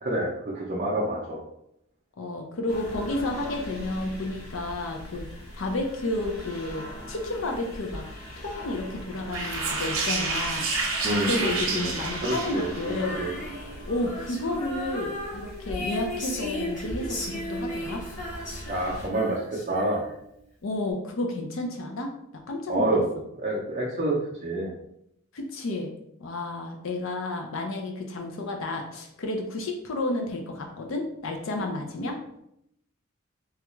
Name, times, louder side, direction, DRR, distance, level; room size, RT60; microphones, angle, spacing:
voice 1, 0.0-1.4 11.0-11.9 12.2-13.4 18.7-19.4 19.7-20.0 22.7-24.7, right 1 dB, 35° right, -4 dB, 0.5 m, -28 dB
voice 2, 2.2-8.0 8.4-10.7 11.3-13.2 13.9-18.0 20.6-22.1 22.5-22.9 25.3-25.9 26.2-32.2, left 2 dB, 65° left, 2 dB, 0.5 m, -31 dB
sound 1, 2.7-19.1, equal, 85° left, 0.9 m, -41 dB
sound 2, 9.3-12.9, right 3 dB, 70° right, 0.7 m, -29 dB
Female singing, 12.9-20.3, left 1 dB, 35° left, 1.0 m, -36 dB
3.4 x 2.3 x 3.0 m, 0.78 s
head